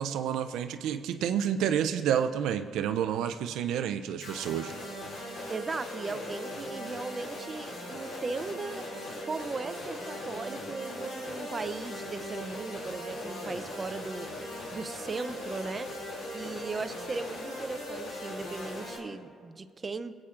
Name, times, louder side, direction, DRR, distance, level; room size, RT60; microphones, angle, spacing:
voice 1, 0.0-4.7, right 9 dB, 85° right, 9 dB, 0.4 m, -29 dB
sound 1, 4.2-19.0, left 1 dB, 75° left, 2.5 m, -39 dB
voice 2, 5.5-8.9 9.3-14.3 14.7-15.9 16.3-20.2, right 4 dB, 30° right, 10 dB, 0.5 m, -37 dB
22.5 x 8.5 x 2.5 m, 2.1 s
cardioid pair, 90°, 0 cm